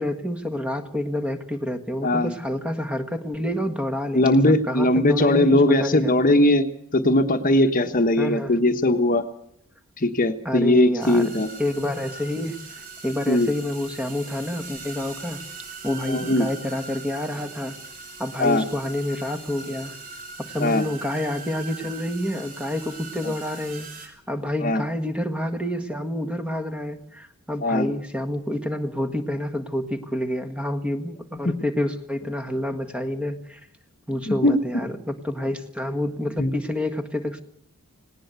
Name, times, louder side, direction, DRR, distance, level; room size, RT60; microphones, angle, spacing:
voice 1, 0.0-6.1 8.2-8.5 10.4-11.3 11.6-15.4 15.8-17.8 18.2-19.9 20.5-33.6 34.1-37.4, left 1 dB, 5° right, 8 dB, 1.6 m, -28 dB
voice 2, 2.0-2.3 4.1-6.6 6.9-9.2 10.0-11.5 13.3-13.5 16.1-16.5 18.4-18.6 20.6-20.9 23.2-23.3 24.6-24.8 27.6-27.9 31.4-31.5 34.3-34.6 36.4-36.5, left 1 dB, 40° left, 8 dB, 1.2 m, -20 dB
sound 1, 11.0-24.1, right 4 dB, 40° right, 5.0 m, -40 dB
19.0 x 18.5 x 8.2 m, 0.67 s
head